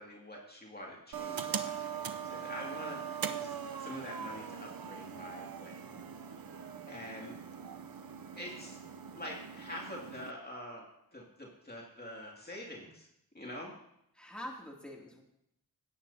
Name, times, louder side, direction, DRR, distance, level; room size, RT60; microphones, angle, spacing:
voice 1, 0.0-6.1 6.9-7.4 8.4-8.8 9.1-13.1 13.3-13.7, left 1 dB, 25° left, -2 dB, 2.4 m, -46 dB
sound 1, 1.1-10.3, right 7 dB, 70° right, 0.7 m, -41 dB
voice 2, 2.8-3.1 14.1-15.2, left 1 dB, 5° left, -2 dB, 2.6 m, -46 dB
17.5 x 9.0 x 2.8 m, 0.77 s
wide cardioid pair, 60°, 37 cm